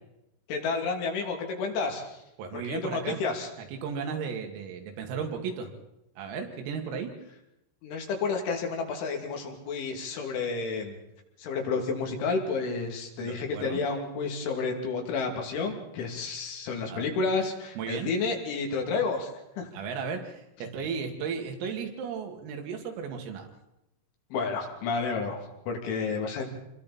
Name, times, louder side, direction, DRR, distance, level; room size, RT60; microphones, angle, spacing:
voice 1, 0.5-2.2 2.5-3.5 7.8-11.0 11.4-19.7 24.3-26.5, left 4 dB, 70° left, 2 dB, 5.0 m, -31 dB
voice 2, 2.4-3.2 3.6-5.7 6.2-7.1 13.2-13.8 16.9-17.1 17.8-18.1 19.7-23.5, right 6 dB, 90° right, 3 dB, 5.0 m, -35 dB
28.0 x 22.0 x 4.3 m, 0.88 s
omnidirectional pair, 5.9 m